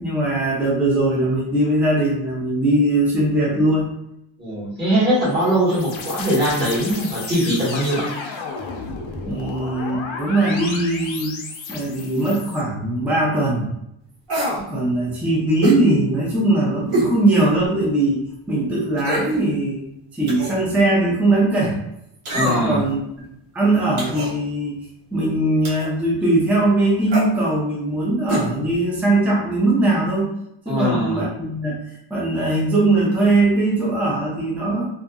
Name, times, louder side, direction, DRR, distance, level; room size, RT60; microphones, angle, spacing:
voice 1, 0.0-3.9 9.3-11.4 11.7-13.7 14.6-18.2 18.5-19.9 20.1-21.8 22.4-23.0 23.5-24.8 25.1-30.3 30.7-31.8 32.1-34.9, right 2 dB, 5° right, -4 dB, 0.4 m, -20 dB
voice 2, 4.4-8.1 22.3-22.8 30.7-31.2, equal, 20° right, -8 dB, 1.2 m, -21 dB
sound 1, 5.0-12.6, left 4 dB, 75° left, 0.6 m, -33 dB
sound 2, 14.3-14.6 15.6-15.8 16.9-17.1 17.6-17.7 19.0-19.4 20.3-20.6 22.3-22.8 24.0-24.3 25.6-25.9 27.1-27.3 28.3-28.5 28.7-28.8, right 1 dB, 85° right, 1.0 m, -24 dB
2.7 x 2.5 x 2.2 m, 0.80 s
wide cardioid pair, 180°, 48 cm